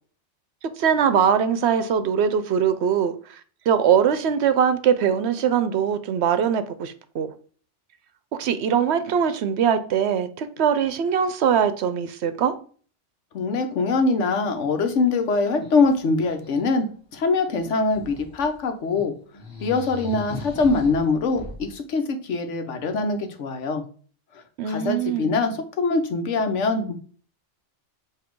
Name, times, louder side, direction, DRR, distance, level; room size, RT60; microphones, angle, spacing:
voice 1, 0.8-3.4 3.7-7.3 8.4-12.5 24.6-25.3, right 8 dB, 70° right, 0.8 m, -22 dB
voice 2, 13.3-19.1 19.6-23.8 24.6-27.0, left 3 dB, 80° left, 1.2 m, -23 dB
sound 1, 14.6-14.7 15.0-16.6 17.5-18.6 18.9-19.1 19.3-21.7, left 2 dB, 5° right, 2.6 m, -39 dB
7.3 x 2.9 x 4.5 m
omnidirectional pair, 1.2 m